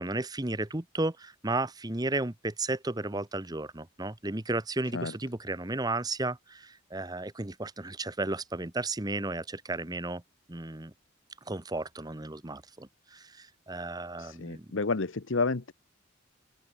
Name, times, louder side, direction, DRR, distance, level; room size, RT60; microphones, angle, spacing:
voice 1, 0.0-10.2 10.5-10.9 11.5-14.7, right 2 dB, 20° right, 1.0 m, -34 dB
voice 2, 14.2-15.7, left 3 dB, 70° left, 1.0 m, -30 dB
open air
head